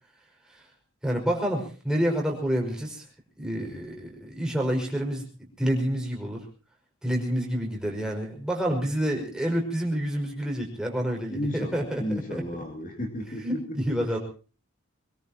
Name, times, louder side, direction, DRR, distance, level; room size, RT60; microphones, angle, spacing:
voice 1, 1.0-3.1 3.4-6.4 7.0-12.4 13.4-14.2, equal, 5° right, -1 dB, 5.2 m, -28 dB
voice 2, 11.3-13.8 14.1-14.2, left 1 dB, 40° left, 3 dB, 2.4 m, -33 dB
23.0 x 21.5 x 2.9 m, 0.36 s
head